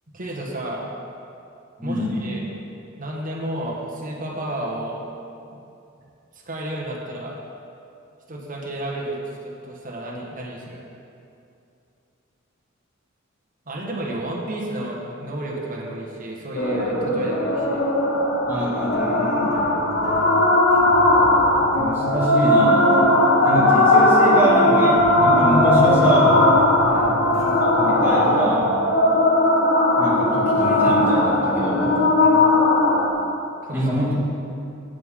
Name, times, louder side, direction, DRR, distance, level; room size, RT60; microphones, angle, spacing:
voice 1, 0.1-0.8 1.8-2.5 3.0-5.0 5.5-5.6 6.4-7.3 8.3-10.8 13.7-17.8 26.8-27.2 32.2-32.4 33.6-33.8, right 1 dB, 40° right, -3 dB, 1.6 m, -31 dB
voice 2, 1.8-2.2 18.5-19.6 21.8-22.9 23.4-26.5 27.6-28.7 30.0-32.1 33.7-34.1, right 1 dB, 10° right, -8 dB, 2.2 m, -24 dB
sound 1, 16.6-33.1, left 1 dB, 60° left, 1.4 m, -18 dB
sound 2, 18.6-21.0 21.4-21.5 21.7-27.7 28.1-28.5, left 1 dB, 85° left, 1.2 m, -31 dB
16.5 x 6.9 x 3.8 m, 2.6 s
head